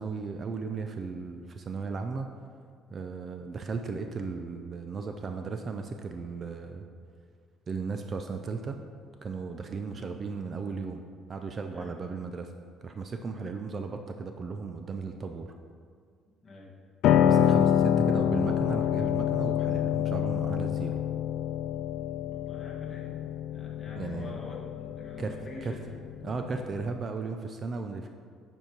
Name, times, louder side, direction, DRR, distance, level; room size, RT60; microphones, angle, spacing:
voice 1, 0.0-2.3 2.9-6.9 7.7-8.8 9.2-11.0 11.3-12.5 12.8-15.5 17.2-21.0 24.0-24.4 25.2-25.3 25.6-25.8 26.2-28.1, right 4 dB, 25° right, 5 dB, 0.3 m, -36 dB
voice 2, 16.4-16.7 22.3-23.1 23.5-25.9, left 2 dB, 20° left, -4 dB, 1.3 m, -46 dB
Piano, 17.0-27.0, left 10 dB, 60° left, 0.3 m, -27 dB
7.9 x 4.6 x 5.1 m, 2.1 s
cardioid pair, 170°, 0 cm